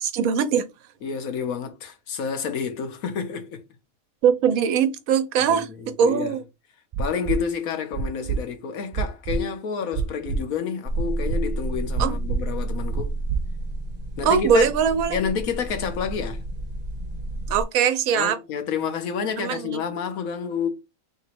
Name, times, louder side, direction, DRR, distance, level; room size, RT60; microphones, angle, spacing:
voice 1, 0.0-0.6 4.2-5.7 6.0-6.4 12.0-12.1 14.2-15.2 17.5-18.4 19.4-19.8, right 7 dB, 85° right, 1.1 m, -21 dB
voice 2, 1.0-3.6 5.4-6.4 7.0-13.2 14.2-14.7 15.1-16.4 18.2-20.7, left 6 dB, 85° left, 1.3 m, -29 dB
sound 1, 6.9-7.4 7.9-8.4 8.9-9.4 9.9-10.4 10.9-11.4 11.9-12.4 12.9-13.4 13.9-14.0, right 6 dB, 60° right, 0.4 m, -26 dB
sound 2, 10.9-17.6, right 2 dB, 35° right, 1.1 m, -30 dB
3.3 x 2.9 x 4.4 m
omnidirectional pair, 1.4 m